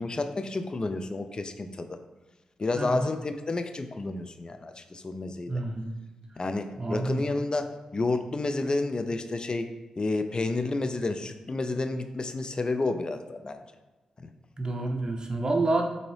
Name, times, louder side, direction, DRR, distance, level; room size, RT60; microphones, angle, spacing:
voice 1, 0.0-2.0 2.6-5.5 6.4-9.7 10.0-13.6, left 2 dB, 35° left, 8 dB, 0.3 m, -30 dB
voice 2, 5.5-5.9 6.8-7.2 14.6-15.8, right 2 dB, 35° right, 3 dB, 0.5 m, -28 dB
3.8 x 2.7 x 3.2 m, 1.2 s
supercardioid pair, 45°, 2 cm